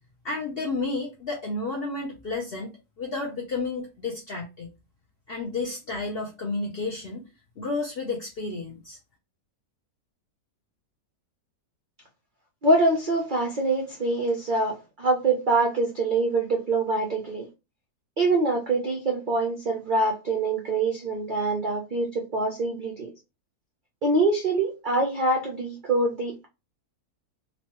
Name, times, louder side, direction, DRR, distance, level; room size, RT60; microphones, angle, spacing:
voice 1, 0.2-4.7 5.3-7.2 7.6-9.0, left 3 dB, 65° left, 0.6 m, -31 dB
voice 2, 12.6-17.4 18.2-23.1 24.0-26.4, right 2 dB, 75° right, 0.4 m, -24 dB
3.1 x 2.2 x 2.9 m
omnidirectional pair, 1.7 m